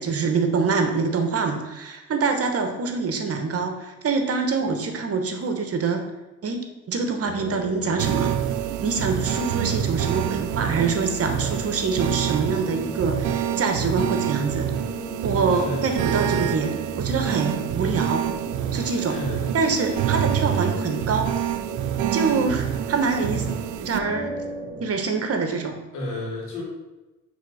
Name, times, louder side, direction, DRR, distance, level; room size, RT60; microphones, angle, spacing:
voice 1, 0.0-6.0 6.4-8.3 8.8-14.7 15.2-16.7 17.0-18.3 18.7-19.2 19.5-21.3 22.1-23.5 23.7-24.3 24.8-25.8, right 4 dB, 50° right, 5 dB, 1.1 m, -25 dB
sound 1, 7.2-24.9, right 3 dB, 5° right, 2.3 m, -36 dB
sound 2, 8.0-24.0, right 10 dB, 80° right, 0.5 m, -27 dB
voice 2, 15.5-16.0 19.1-19.7 25.9-26.6, left 1 dB, 90° left, -4 dB, 2.4 m, -32 dB
6.3 x 3.6 x 5.5 m, 1.1 s
cardioid pair, 90°, 30 cm